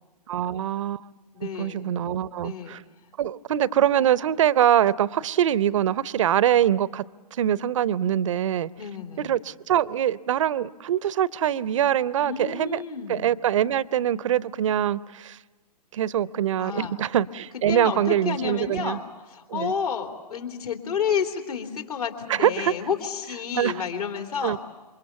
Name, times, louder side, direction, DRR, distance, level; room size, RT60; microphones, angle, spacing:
voice 1, 0.3-1.1 1.4-2.8 3.2-7.0 7.3-8.7 9.2-12.8 13.1-15.4 15.9-19.0 19.5-19.7 22.3-22.7 23.5-23.7 24.4-24.6, right 10 dB, 50° right, 20 dB, 0.7 m, -23 dB
voice 2, 1.3-1.9 2.4-2.8 8.8-9.3 12.2-13.3 16.6-17.0 17.5-24.6, left 7 dB, 65° left, 4 dB, 3.3 m, -30 dB
27.5 x 24.5 x 7.1 m, 1.3 s
figure-of-eight pair, 120°, 21 cm